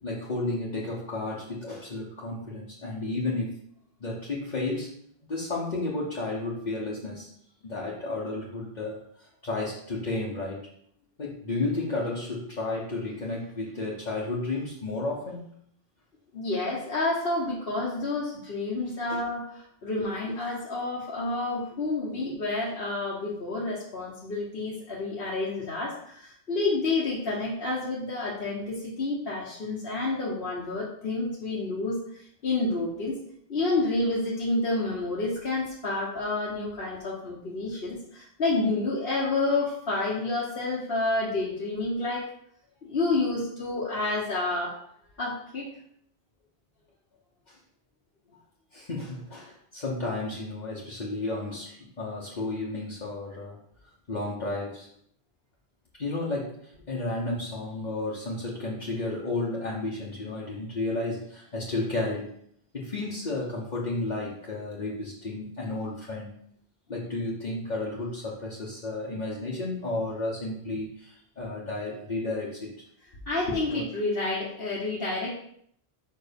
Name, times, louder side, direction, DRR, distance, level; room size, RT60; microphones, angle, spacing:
voice 1, 0.0-3.6 4.0-4.9 5.3-7.3 7.6-10.7 11.2-15.4 19.1-19.2 47.5-47.6 48.7-53.6 54.1-54.9 56.0-62.3 62.7-66.3 66.9-72.7 73.7-73.8, left 2 dB, 45° left, -5 dB, 1.2 m, -32 dB
voice 2, 16.3-33.2 33.5-42.3 42.8-44.8 45.2-45.7 73.3-75.3, left 2 dB, 65° left, -5 dB, 1.3 m, -29 dB
5.5 x 4.6 x 5.2 m, 0.69 s
omnidirectional pair, 1.1 m